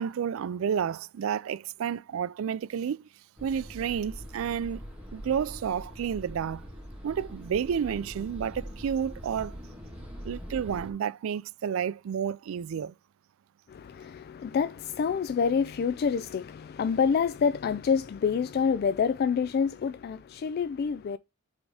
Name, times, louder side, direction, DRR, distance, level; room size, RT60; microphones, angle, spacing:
voice 1, 0.0-3.1 3.4-4.8 5.1-6.6 7.0-9.6 10.2-12.9, right 8 dB, 85° right, 0.3 m, -30 dB
sound 1, 3.4-10.9, equal, 5° right, 1.6 m, -43 dB
voice 2, 13.7-21.2, left 6 dB, 50° left, 0.3 m, -27 dB
6.2 x 3.5 x 4.9 m
head